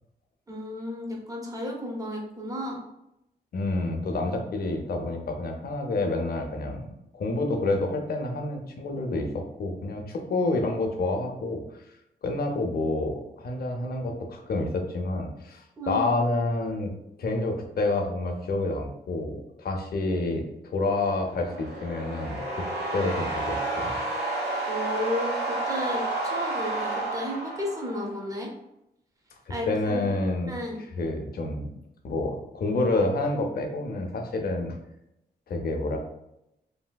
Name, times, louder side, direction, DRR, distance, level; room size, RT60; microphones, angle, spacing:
voice 1, 0.5-2.8 15.8-16.1 24.7-28.5 29.5-30.1 30.5-30.8, left 1 dB, 20° right, 0 dB, 0.6 m, -33 dB
voice 2, 3.5-6.9 7.2-11.6 12.2-16.9 17.2-20.4 20.7-22.6 22.9-24.0 29.7-30.5 30.9-31.7 32.0-34.7 35.5-36.0, left 2 dB, 60° left, 3 dB, 0.5 m, -28 dB
sound 1, 21.1-28.2, right 2 dB, 80° right, 0.9 m, -31 dB
3.1 x 2.6 x 2.2 m, 0.84 s
wide cardioid pair, 140°, 17 cm